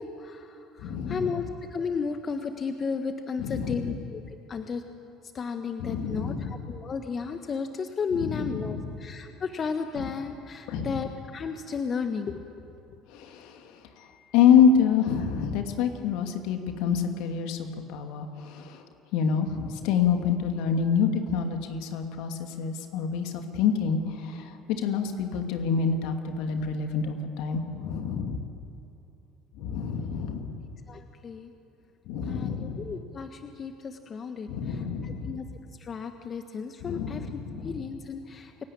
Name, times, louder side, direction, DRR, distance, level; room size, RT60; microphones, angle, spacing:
voice 1, 0.0-4.2 4.5-4.8 5.3-12.4 30.9-31.5 32.3-35.4 35.8-38.5, left 5 dB, 40° left, 7 dB, 1.4 m, -34 dB
voice 2, 0.8-1.3 3.4-4.0 5.8-6.7 8.1-9.0 9.9-10.1 10.7-11.1 13.1-13.7 14.0-14.1 14.3-18.8 19.1-28.4 29.6-30.6 32.1-32.9 34.5-35.4 36.8-37.8, left 7 dB, 70° left, 5 dB, 2.5 m, -27 dB
28.5 x 17.0 x 8.7 m, 2.8 s
hypercardioid pair, 65°, 0 cm